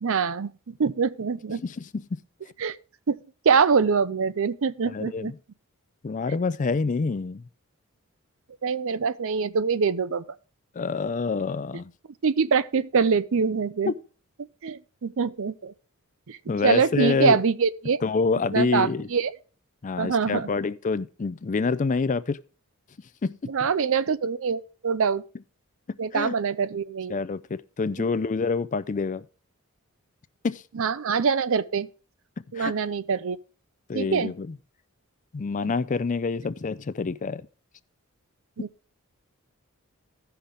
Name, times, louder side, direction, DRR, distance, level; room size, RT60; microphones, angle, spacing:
voice 1, 0.0-1.6 2.6-2.7 3.1-3.2 3.4-5.3 8.6-10.2 12.2-13.9 14.6-15.7 16.3-16.4 16.6-18.0 18.5-19.3 20.0-20.5 23.5-25.2 26.0-27.2 30.8-31.9 32.5-33.4 33.9-34.3 38.6-38.7, right 5 dB, 60° right, 0.5 m, -24 dB
voice 2, 1.6-2.2 4.8-5.3 6.0-7.4 10.8-11.9 13.9-14.0 16.5-17.4 18.0-19.1 19.8-22.4 23.2-23.4 25.9-26.3 27.1-29.2 30.4-30.6 32.6-32.7 33.9-34.5 35.3-37.5, left 4 dB, 35° left, 0.4 m, -27 dB
15.5 x 5.8 x 3.4 m
head